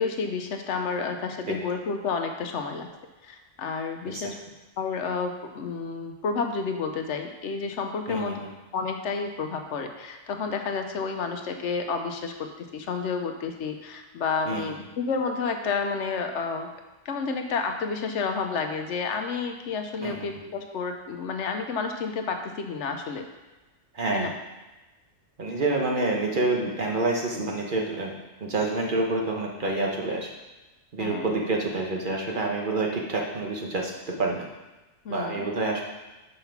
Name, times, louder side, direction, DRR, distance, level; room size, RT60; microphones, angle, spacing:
voice 1, 0.0-2.9 3.2-4.3 4.8-8.4 8.7-16.7 17.0-23.3 24.1-24.3 31.0-31.3 35.0-35.4, left 5 dB, 75° left, 5 dB, 1.0 m, -30 dB
voice 2, 8.1-8.5 14.5-14.7 20.0-20.3 23.9-24.3 25.4-28.1 28.4-30.3 30.9-34.5 35.1-35.8, right 2 dB, 45° right, 0 dB, 1.1 m, -28 dB
5.7 x 5.4 x 5.7 m, 1.1 s
omnidirectional pair, 1.3 m